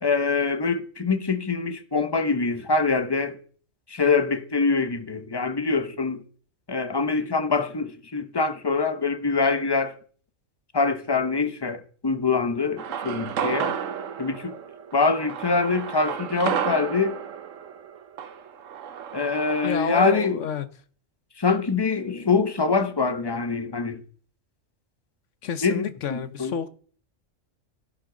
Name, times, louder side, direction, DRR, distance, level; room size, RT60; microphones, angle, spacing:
voice 1, 0.0-3.4 3.9-6.2 6.7-9.9 10.7-13.7 14.2-14.5 14.9-17.2 19.1-20.4 21.4-24.0 25.6-26.5, left 4 dB, 20° left, 0.9 m, -24 dB
sound 1, 12.8-19.7, right 8 dB, 75° right, 1.2 m, -32 dB
voice 2, 19.6-20.7 25.4-26.7, left 8 dB, 70° left, 1.2 m, -29 dB
13.5 x 11.5 x 3.9 m
omnidirectional pair, 1.3 m